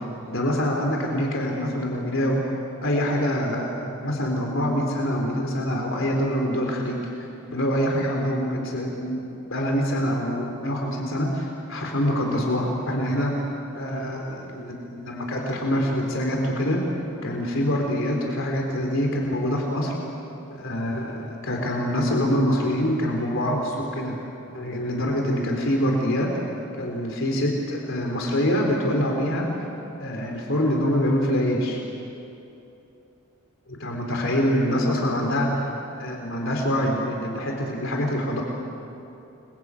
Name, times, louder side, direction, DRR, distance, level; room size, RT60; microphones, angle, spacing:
voice 1, 0.3-2.4 2.8-7.0 7.5-13.3 13.7-16.8 17.2-19.9 20.5-24.2 24.5-26.3 26.8-29.5 30.0-31.8 33.7-35.7 36.0-38.4, equal, 60° left, 0 dB, 3.8 m, -25 dB
29.5 x 22.5 x 8.4 m, 2.9 s
head